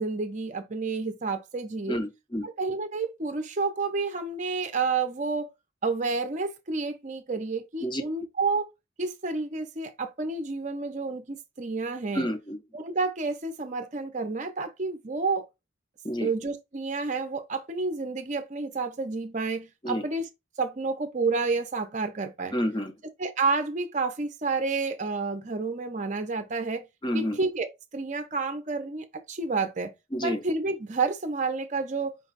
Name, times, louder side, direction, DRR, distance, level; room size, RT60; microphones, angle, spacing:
voice 1, 0.0-2.0 2.4-5.5 5.8-8.7 9.0-12.3 12.7-15.4 16.2-20.3 20.6-22.5 23.2-26.8 27.1-27.7 27.9-29.9 30.2-32.2, right 4 dB, 35° right, 0.6 m, -30 dB
voice 2, 1.9-2.5 7.8-8.1 12.1-12.6 16.0-16.3 19.8-20.0 22.5-22.9 27.0-27.4 30.1-30.4, equal, 20° left, 0.7 m, -29 dB
5.2 x 2.3 x 4.0 m
head